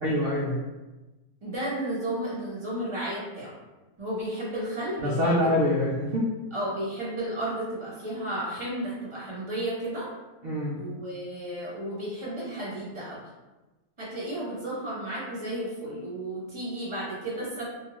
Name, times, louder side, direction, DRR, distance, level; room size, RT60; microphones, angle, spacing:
voice 1, 0.0-0.6 5.0-6.3 10.4-10.8, left 1 dB, 70° right, -6 dB, 0.5 m, -25 dB
voice 2, 1.4-3.5 4.0-5.6 6.5-10.1 10.7-13.2 14.0-17.7, right 1 dB, 25° right, -7 dB, 0.8 m, -33 dB
2.7 x 2.2 x 2.9 m, 1.1 s
omnidirectional pair, 1.6 m